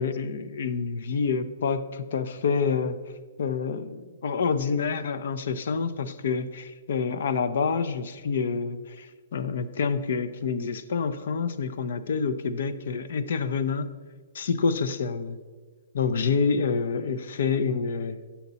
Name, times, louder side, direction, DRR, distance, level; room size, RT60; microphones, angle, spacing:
voice 1, 0.0-3.0 3.4-13.9 14.3-15.4 15.9-18.2, left 5 dB, 70° left, 11 dB, 0.5 m, -27 dB
7.2 x 5.8 x 4.0 m, 1.4 s
hypercardioid pair, 130°, 0 cm